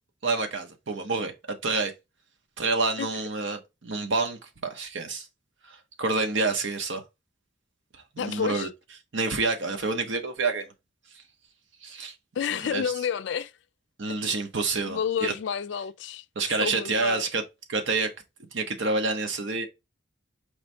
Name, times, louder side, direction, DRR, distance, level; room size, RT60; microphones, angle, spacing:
voice 1, 0.2-1.9 2.6-5.3 5.7-7.0 8.2-8.7 9.1-10.7 11.8-12.1 12.7-12.8 14.0-15.3 16.4-17.4 17.7-18.1 18.5-19.7, right 3 dB, 80° right, 0.9 m, -28 dB
voice 2, 8.2-8.7 12.4-13.5 14.9-16.2 16.5-17.3, left 7 dB, 70° left, 0.3 m, -30 dB
4.8 x 2.7 x 3.2 m
head